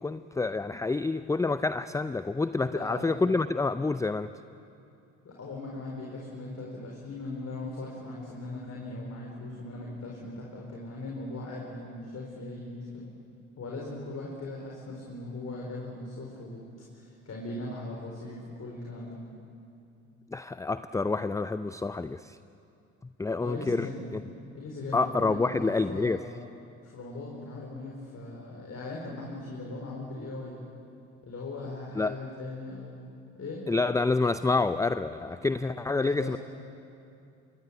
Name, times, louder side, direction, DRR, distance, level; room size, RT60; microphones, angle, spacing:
voice 1, 0.0-4.3 20.3-22.4 23.2-23.9 24.1-24.2 24.9-26.2 31.9-32.1 33.7-36.4, left 3 dB, 10° left, 12 dB, 0.5 m, -28 dB
voice 2, 2.7-3.1 5.2-13.1 13.6-16.6 16.9-19.2 23.4-24.1 24.5-26.4 26.8-30.6 31.2-33.0 33.3-33.6 36.0-36.4, left 2 dB, 40° left, -2 dB, 4.8 m, -39 dB
25.5 x 22.0 x 8.2 m, 2.5 s
hypercardioid pair, 55°, 39 cm